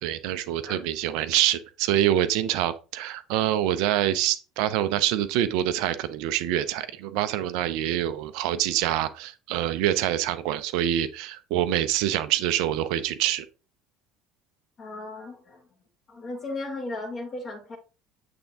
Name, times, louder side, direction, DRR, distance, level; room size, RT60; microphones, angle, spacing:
voice 1, 0.0-13.5, right 12 dB, 60° right, 0.5 m, -26 dB
voice 2, 14.8-15.7 16.1-17.8, left 2 dB, 40° left, 1.3 m, -36 dB
7.7 x 3.5 x 3.7 m
figure-of-eight pair, 60°, 0 cm